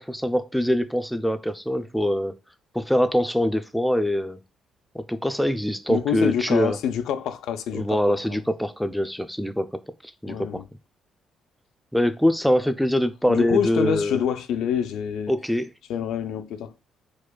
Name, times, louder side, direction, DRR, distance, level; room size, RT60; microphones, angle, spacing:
voice 1, 0.0-2.3 2.7-4.4 4.9-6.8 7.7-9.7 10.2-10.6 11.9-14.2 15.3-15.7, equal, ahead, 0.3 m, -23 dB
voice 2, 5.9-8.0 8.3-8.4 10.3-10.6 13.3-15.3 15.9-16.7, left 8 dB, 85° left, 0.3 m, -26 dB
4.6 x 2.2 x 2.2 m
cardioid pair, 90°, 0 cm